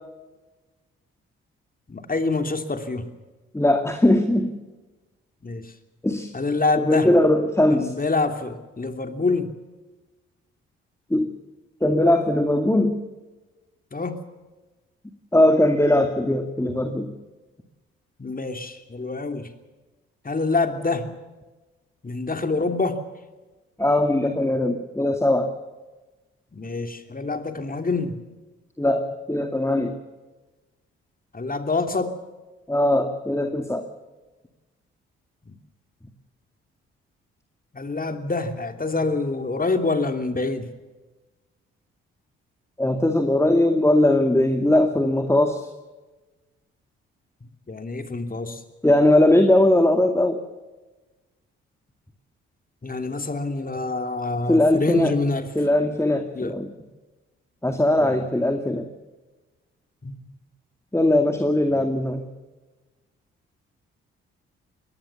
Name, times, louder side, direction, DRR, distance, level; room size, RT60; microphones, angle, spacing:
voice 1, 1.9-3.1 5.4-5.7 6.3-7.1 7.7-9.5 13.9-14.2 18.2-19.5 20.2-21.1 22.0-23.0 26.5-28.2 31.3-32.2 35.5-35.6 37.7-40.7 47.4-48.6 52.8-55.5 56.3-56.5 58.0-58.2 60.0-60.2 61.7-61.9, left 3 dB, 30° left, 7 dB, 3.0 m, -26 dB
voice 2, 3.5-4.5 6.0-6.3 6.8-7.9 11.1-11.3 11.8-13.0 15.3-17.1 23.8-25.5 28.8-29.9 32.7-33.9 42.8-45.7 48.8-50.4 54.5-55.1 55.6-56.7 57.6-58.9 60.9-62.2, left 1 dB, 10° left, 6 dB, 2.2 m, -20 dB
22.5 x 18.0 x 7.1 m, 1.2 s
hypercardioid pair, 45°, 30 cm